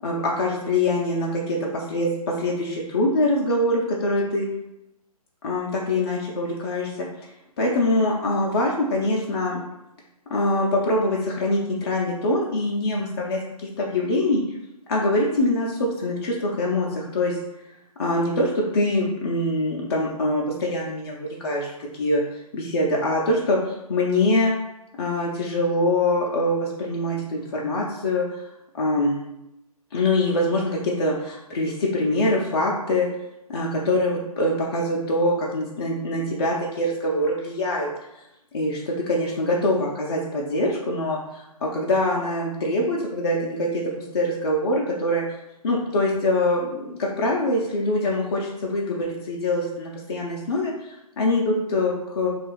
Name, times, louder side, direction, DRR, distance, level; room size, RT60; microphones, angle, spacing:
voice 1, 0.0-4.5 5.4-7.3 7.6-9.6 10.3-14.4 14.9-17.4 18.0-24.5 25.0-28.5 28.7-29.2 29.9-33.1 33.5-38.2 38.5-45.2 45.6-52.3, left 1 dB, 40° left, -3 dB, 0.4 m, -24 dB
2.9 x 2.3 x 3.1 m, 0.89 s
figure-of-eight pair, 140°, 20 cm